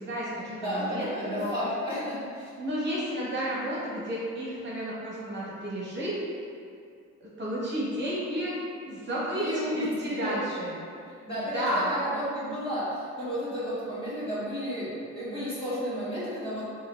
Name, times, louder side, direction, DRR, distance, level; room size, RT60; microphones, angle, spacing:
voice 1, 0.0-1.6 2.6-6.2 7.2-8.5 8.9-10.8 11.5-11.9, right 1 dB, 35° right, -7 dB, 0.8 m, -32 dB
voice 2, 0.6-2.5 9.4-10.3 11.2-11.5 11.9-16.7, equal, 20° left, -11 dB, 1.4 m, -32 dB
4.1 x 2.4 x 2.4 m, 2.4 s
cardioid pair, 90°, 30 cm